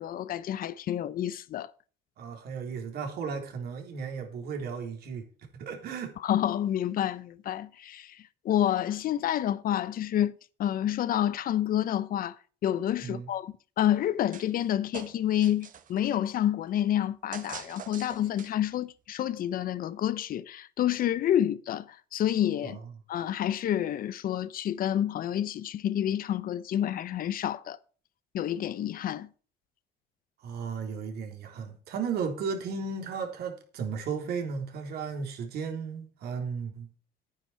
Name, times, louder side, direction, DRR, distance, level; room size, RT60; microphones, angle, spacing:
voice 1, 0.0-1.7 6.2-8.2 8.4-12.4 12.6-22.8 23.1-27.8 28.3-29.3, left 11 dB, 60° left, 0.8 m, -29 dB
voice 2, 2.2-5.3 5.5-6.1 13.0-13.3 22.6-22.8 30.4-36.9, right 5 dB, 70° right, 3.5 m, -35 dB
sound 1, 14.3-14.7 14.9-16.0 17.3-18.7, right 8 dB, 50° right, 1.3 m, -44 dB
10.0 x 9.7 x 4.6 m
cardioid pair, 110°, 17 cm